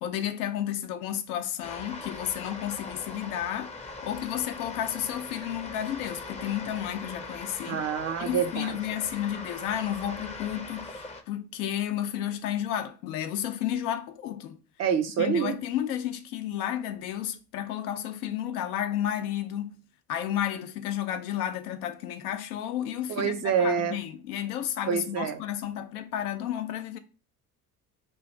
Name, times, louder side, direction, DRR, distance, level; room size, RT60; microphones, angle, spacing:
voice 1, 0.0-3.7 4.0-7.9 8.2-14.6 15.2-19.8 20.1-27.0, left 11 dB, 70° left, 0.6 m, -32 dB
sound 1, 1.6-11.2, left 3 dB, 15° left, 0.6 m, -41 dB
voice 2, 7.7-8.7 14.8-15.5 23.1-24.0 24.9-25.4, right 7 dB, 35° right, 0.5 m, -27 dB
3.1 x 2.4 x 4.3 m
figure-of-eight pair, 55°, 46 cm